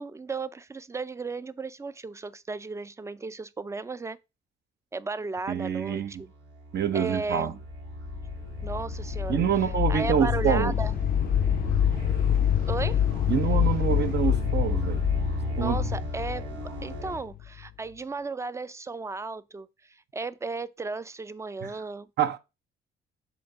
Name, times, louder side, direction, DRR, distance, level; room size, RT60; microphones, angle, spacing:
voice 1, 0.0-4.2 4.9-6.3 6.9-7.6 8.6-9.4 9.9-10.9 12.7-13.0 15.6-19.7 20.1-22.1, right 3 dB, 15° right, 0.5 m, -35 dB
voice 2, 5.5-6.2 6.7-7.5 9.3-10.7 13.3-15.0 15.6-15.9 21.6-21.7 22.2-22.4, right 9 dB, 55° right, 0.8 m, -26 dB
sound 1, 5.9-17.2, right 2 dB, 90° right, 2.3 m, -37 dB
sound 2, 7.9-17.7, left 10 dB, 45° left, 0.5 m, -27 dB
7.5 x 2.9 x 5.4 m
cardioid pair, 90°, 20 cm